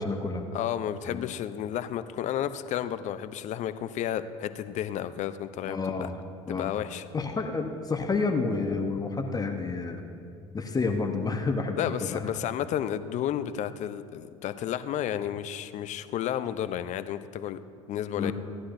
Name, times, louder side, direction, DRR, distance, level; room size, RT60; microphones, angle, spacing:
voice 1, 0.0-0.4 1.1-1.2 5.6-6.1 6.5-6.7 7.1-10.0 10.5-12.2 18.2-18.3, left 4 dB, 20° left, 4 dB, 1.1 m, -29 dB
voice 2, 0.5-6.1 6.5-7.1 11.8-17.6 17.9-18.3, left 10 dB, 45° left, 12 dB, 0.6 m, -32 dB
17.5 x 11.0 x 2.6 m, 2.4 s
hypercardioid pair, 70°, 17 cm